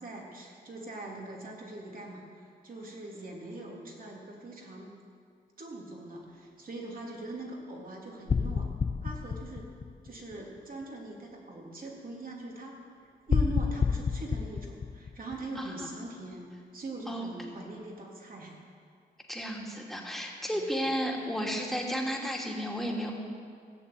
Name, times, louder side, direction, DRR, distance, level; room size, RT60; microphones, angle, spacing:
voice 1, 0.0-4.9 5.6-8.7 9.0-9.7 10.0-16.5 16.7-18.5 20.5-20.7, right 2 dB, 55° right, -1 dB, 3.3 m, -42 dB
sound 1, 8.3-10.6 13.3-15.8, left 5 dB, 35° left, 0.5 m, -30 dB
voice 2, 15.6-16.0 17.1-17.3 19.3-23.1, equal, ahead, -1 dB, 2.8 m, -33 dB
16.0 x 7.1 x 9.2 m, 2.2 s
cardioid pair, 65°, 18 cm